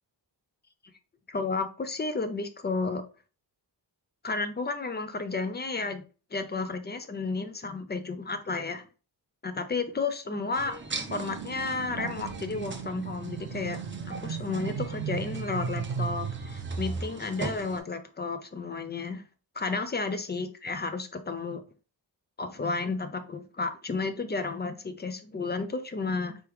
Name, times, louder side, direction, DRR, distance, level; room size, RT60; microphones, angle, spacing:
voice 1, 1.3-3.0 4.2-6.0 6.3-8.8 9.4-13.8 14.1-19.2 19.6-21.6 22.4-26.4, left 3 dB, 25° left, 0.4 m, -32 dB
sound 1, 10.5-17.8, right 3 dB, 25° right, 0.5 m, -41 dB
sound 2, 11.1-17.0, right 6 dB, 80° right, 0.9 m, -36 dB
4.6 x 3.5 x 3.0 m
wide cardioid pair, 180°, 44 cm